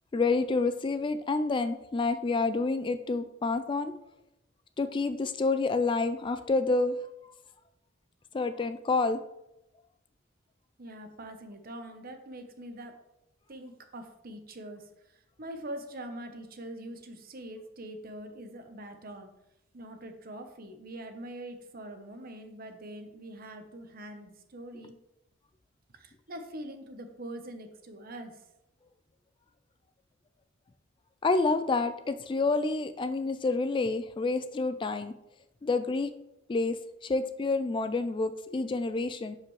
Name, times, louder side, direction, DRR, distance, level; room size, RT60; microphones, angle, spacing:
voice 1, 0.1-3.9 4.8-7.0 8.3-9.2 31.2-35.1 35.6-36.1 36.5-36.8 37.0-39.4, left 3 dB, 25° left, 11 dB, 0.3 m, -28 dB
voice 2, 10.8-13.0 13.5-19.3 19.7-25.0 25.9-28.5, right 1 dB, 50° right, 6 dB, 0.9 m, -43 dB
11.0 x 4.9 x 3.2 m, 0.89 s
head